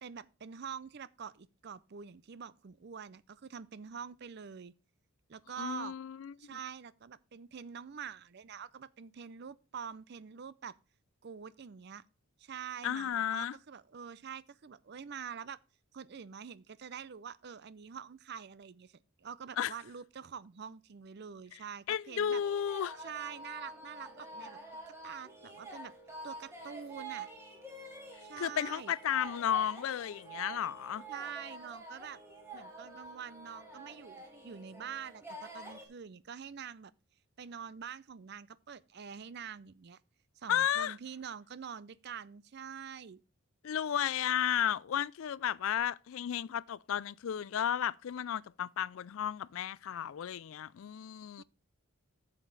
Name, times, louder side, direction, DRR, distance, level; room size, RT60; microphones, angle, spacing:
voice 1, 0.0-4.7 5.3-5.9 6.4-10.7 11.2-12.0 12.4-15.6 15.9-22.4 23.0-24.6 25.0-25.9 26.2-27.3 28.2-28.9 31.1-32.2 32.5-36.9 37.4-40.0 40.4-43.2 51.4-51.5, right 7 dB, 50° right, 0.5 m, -46 dB
voice 2, 5.6-6.6 12.8-13.5 19.6-19.7 21.9-23.0 28.4-31.0 40.5-40.9 43.6-51.4, left 9 dB, 65° left, 0.3 m, -33 dB
sound 1, 22.4-35.9, right 2 dB, 10° right, 2.1 m, -48 dB
8.9 x 7.4 x 4.0 m
head